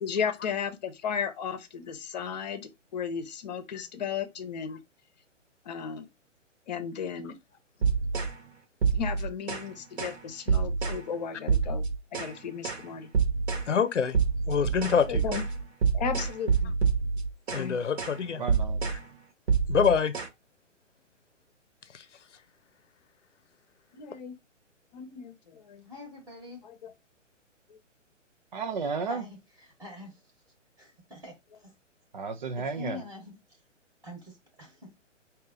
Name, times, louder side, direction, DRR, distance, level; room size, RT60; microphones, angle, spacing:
voice 1, 0.0-4.8 5.6-6.1 6.7-7.4 8.9-11.8 12.1-13.1 15.1-15.4 15.9-16.7 17.5-17.8 23.9-24.4 24.9-25.8 26.6-26.9 27.7-27.8, left 7 dB, 35° left, 0.9 m, -35 dB
sound 1, 7.8-8.4 8.8-9.7 10.0-10.2 10.5-11.0 11.5-12.4 12.6-12.9 13.1-13.7 14.1-17.7 18.0-18.2 18.5-19.0 19.5-20.3, right 5 dB, 55° right, 1.2 m, -27 dB
voice 2, 13.7-14.2 14.5-15.2 17.5-18.4 19.7-20.1 21.9-22.0, left 6 dB, 70° left, 0.7 m, -25 dB
voice 3, 18.4-18.9 28.5-29.2 32.1-33.0, right 4 dB, 40° right, 0.5 m, -33 dB
voice 4, 25.8-26.6 29.0-30.2 30.8-31.7 32.6-33.6 34.0-35.0, left 3 dB, 5° right, 1.1 m, -45 dB
5.2 x 2.8 x 3.6 m
figure-of-eight pair, 130°, 38 cm